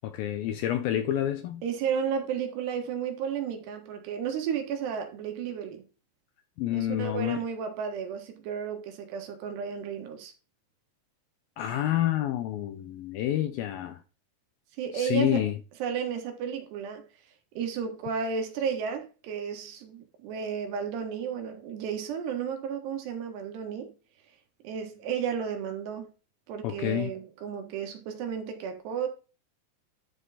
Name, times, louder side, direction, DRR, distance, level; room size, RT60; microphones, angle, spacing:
voice 1, 0.0-1.6 6.6-7.4 11.6-14.0 14.9-15.5 26.6-27.1, left 12 dB, 80° left, 2.2 m, -28 dB
voice 2, 1.6-5.8 6.7-10.3 14.8-15.4 15.8-17.0 17.6-23.9 24.6-26.1 26.5-29.1, right 7 dB, 80° right, 3.5 m, -33 dB
11.5 x 4.5 x 4.1 m
omnidirectional pair, 4.8 m